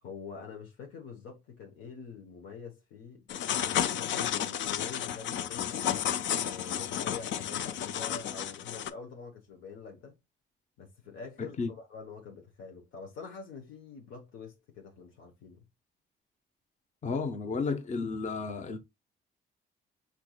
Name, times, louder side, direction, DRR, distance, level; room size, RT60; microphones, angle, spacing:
voice 1, 0.0-10.2 10.8-15.6, left 5 dB, 85° left, 1.0 m, -46 dB
sound 1, 3.3-8.9, left 10 dB, 70° left, 0.5 m, -32 dB
voice 2, 17.0-18.8, left 4 dB, 35° left, 0.8 m, -32 dB
4.7 x 4.2 x 2.3 m
cardioid pair, 90°, 20 cm